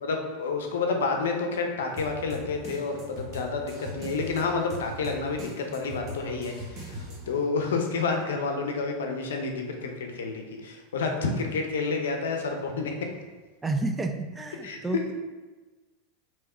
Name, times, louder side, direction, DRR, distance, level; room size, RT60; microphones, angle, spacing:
voice 1, 0.0-12.9 14.6-14.8, left 4 dB, 85° left, 3 dB, 0.6 m, -29 dB
sound 1, 2.0-7.4, equal, 35° right, 1.1 m, -40 dB
voice 2, 13.6-15.1, right 3 dB, 15° right, 6 dB, 0.4 m, -30 dB
3.5 x 3.1 x 4.3 m, 1.2 s
hypercardioid pair, 105°, 0 cm